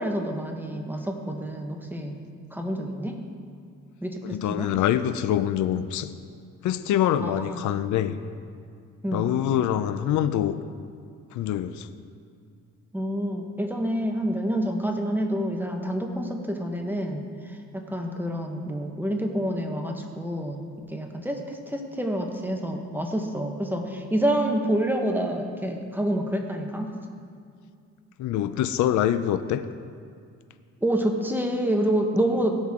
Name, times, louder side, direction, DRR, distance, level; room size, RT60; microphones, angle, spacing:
voice 1, 0.0-2.2 2.5-3.2 4.0-4.7 7.2-7.7 9.0-9.3 12.9-20.6 20.9-26.9 30.8-32.6, right 1 dB, 5° right, 2 dB, 1.2 m, -28 dB
voice 2, 4.2-6.1 6.6-8.2 9.1-10.6 11.3-11.9 28.2-29.6, left 11 dB, 75° left, 11 dB, 0.5 m, -25 dB
17.0 x 6.3 x 3.7 m, 2.3 s
cardioid pair, 90°, 30 cm